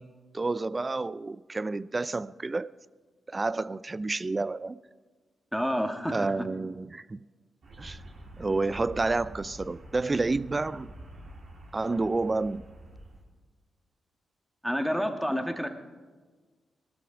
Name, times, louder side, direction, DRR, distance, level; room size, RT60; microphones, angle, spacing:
voice 1, 0.0-2.7 3.3-4.8 6.1-7.2 7.8-8.0 8.4-10.9 11.7-12.7, right 3 dB, 30° right, 0.4 m, -30 dB
voice 2, 5.5-6.3 14.6-15.7, equal, ahead, 1.8 m, -29 dB
sound 1, 7.6-13.2, right 1 dB, 65° right, 4.2 m, -47 dB
19.5 x 12.5 x 5.1 m
cardioid pair, 65°, 0 cm